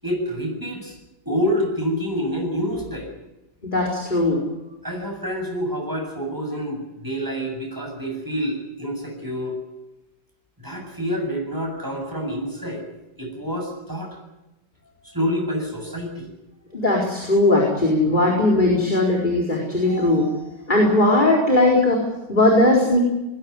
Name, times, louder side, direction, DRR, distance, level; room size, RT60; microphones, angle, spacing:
voice 1, 0.0-0.9 1.2-3.1 4.8-9.5 10.6-12.8 13.2-14.2 15.1-16.3, equal, 10° right, 1 dB, 7.9 m, -27 dB
voice 2, 3.6-4.4 16.7-23.0, left 2 dB, 25° left, -1 dB, 4.6 m, -19 dB
21.0 x 18.0 x 9.7 m, 0.99 s
omnidirectional pair, 2.1 m